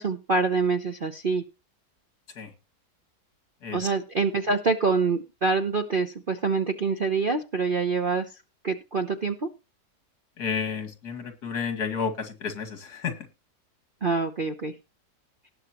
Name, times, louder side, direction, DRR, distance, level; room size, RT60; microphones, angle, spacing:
voice 1, 0.0-1.4 3.7-8.3 8.6-9.5 14.0-14.7, right 4 dB, 40° right, 6 dB, 0.8 m, -25 dB
voice 2, 10.4-13.1, left 6 dB, 60° left, 7 dB, 2.7 m, -31 dB
19.0 x 7.0 x 3.0 m, 0.28 s
omnidirectional pair, 1.9 m